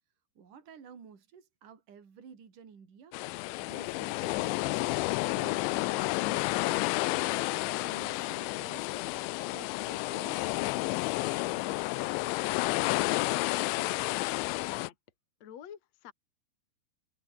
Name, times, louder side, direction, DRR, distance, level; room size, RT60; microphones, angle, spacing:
voice 1, 0.4-3.2 3.6-4.8 5.4-7.0 7.4-9.1 9.5-12.3, right 6 dB, 40° right, 5.2 m, -53 dB
sound 1, 3.1-14.9, left 22 dB, 90° left, 2.6 m, -31 dB
voice 2, 14.6-14.9 15.4-16.1, left 10 dB, 40° left, 2.9 m, -47 dB
omnidirectional pair, 6.0 m